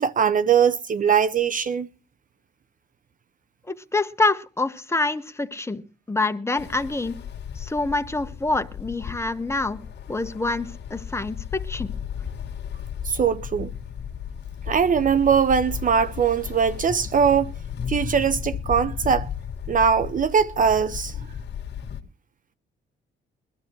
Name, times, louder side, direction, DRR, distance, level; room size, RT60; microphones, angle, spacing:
voice 1, 0.0-1.9 13.1-13.7 14.7-17.5 17.9-19.3 19.7-21.2, right 7 dB, 40° right, 0.6 m, -21 dB
voice 2, 3.7-5.8 6.1-7.2 7.6-9.8 10.1-11.9, left 3 dB, 15° left, 1.2 m, -26 dB
Ocean, 6.6-22.0, left 8 dB, 60° left, 1.8 m, -34 dB
22.0 x 12.0 x 3.1 m
cardioid pair, 90°, 20 cm